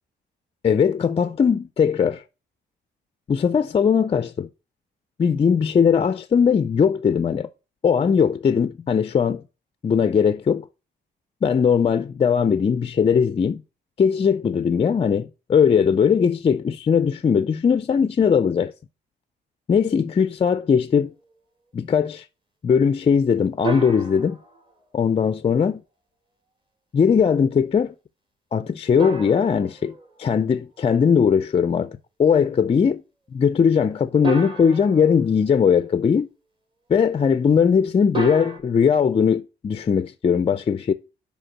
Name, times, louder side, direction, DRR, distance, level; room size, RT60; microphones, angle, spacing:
voice 1, 0.6-2.2 3.3-4.5 5.2-7.5 7.8-9.4 9.8-10.7 11.4-13.6 14.0-18.7 19.7-21.1 21.7-22.3 22.6-24.4 24.9-25.8 26.9-27.9 28.5-33.0 33.3-36.3 36.9-40.9, left 6 dB, 30° left, 0.4 m, -19 dB
sound 1, 23.6-24.7 29.0-30.5 34.2-35.4 38.1-38.6, right 6 dB, 25° right, 2.0 m, -32 dB
5.1 x 5.0 x 6.0 m
cardioid pair, 90°, 20 cm